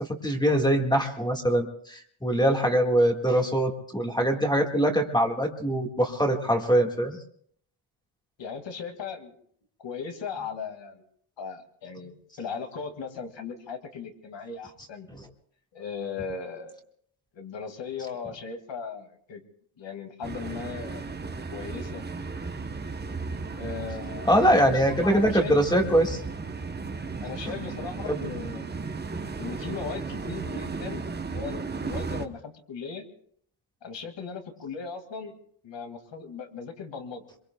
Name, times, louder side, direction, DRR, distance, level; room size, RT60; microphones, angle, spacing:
voice 1, 0.0-7.2 15.1-15.3 24.2-26.2 27.5-27.6 28.1-28.3, right 1 dB, 10° left, 2 dB, 1.7 m, -23 dB
voice 2, 8.4-9.3 9.8-10.9 11.4-15.1 15.7-16.8 17.4-19.4 19.8-21.0 21.5-22.0 23.6-25.6 27.2-28.7 29.4-31.0 31.3-33.0 33.8-35.3 35.6-37.2, left 5 dB, 65° left, 5 dB, 2.2 m, -37 dB
sound 1, 20.2-32.3, right 4 dB, 20° right, 0.8 m, -35 dB
26.5 x 23.0 x 2.3 m, 0.63 s
wide cardioid pair, 145°, 48 cm